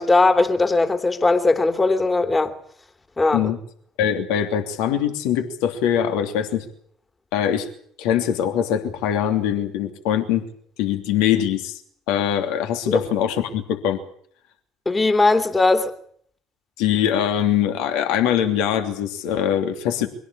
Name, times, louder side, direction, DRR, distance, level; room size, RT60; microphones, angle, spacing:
voice 1, 0.0-2.5 3.2-3.4 12.9-13.0 14.8-15.9, left 3 dB, 20° left, 3.1 m, -18 dB
voice 2, 4.0-6.6 7.3-7.7 8.0-10.4 10.8-11.8 12.1-14.0 16.8-20.1, left 9 dB, 60° left, 3.0 m, -22 dB
24.5 x 17.5 x 8.7 m
figure-of-eight pair, 60°, 0 cm